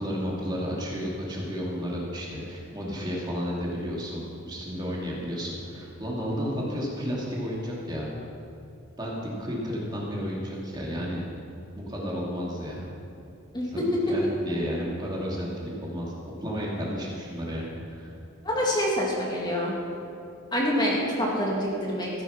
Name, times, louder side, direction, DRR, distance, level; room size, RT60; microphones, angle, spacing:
voice 1, 0.0-8.1 9.0-11.2 11.7-12.9 14.1-16.1 16.4-18.1, equal, 20° right, -4 dB, 2.4 m, -32 dB
voice 2, 18.4-19.7 20.5-22.1, equal, 20° left, -4 dB, 2.2 m, -26 dB
14.0 x 9.2 x 5.8 m, 2.6 s
head